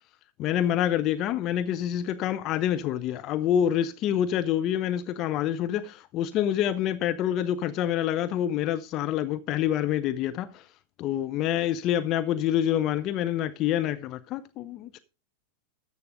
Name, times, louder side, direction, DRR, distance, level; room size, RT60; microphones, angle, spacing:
voice 1, 0.4-10.6 11.0-15.0, left 11 dB, 35° left, 0.7 m, -27 dB
13.5 x 8.2 x 3.9 m
figure-of-eight pair, 90°, 0 cm